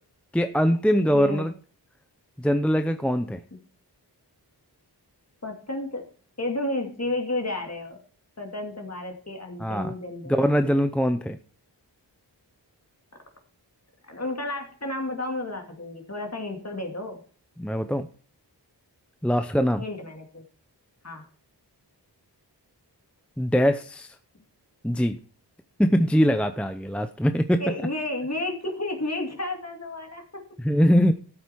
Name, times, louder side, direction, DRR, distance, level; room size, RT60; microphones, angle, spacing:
voice 1, 0.3-1.5 2.4-3.4 9.6-9.9 10.3-11.4 17.6-18.1 19.2-19.8 23.4-24.2 24.8-25.2 25.8-27.8 30.6-31.1, equal, 5° left, 8 dB, 0.6 m, -22 dB
voice 2, 1.1-1.5 5.4-6.1 6.4-8.0 8.4-10.7 14.0-17.2 19.8-20.4 21.0-21.3 27.6-30.5, left 2 dB, 35° left, 3 dB, 2.6 m, -32 dB
13.0 x 8.2 x 4.5 m, 0.41 s
wide cardioid pair, 75°, 42 cm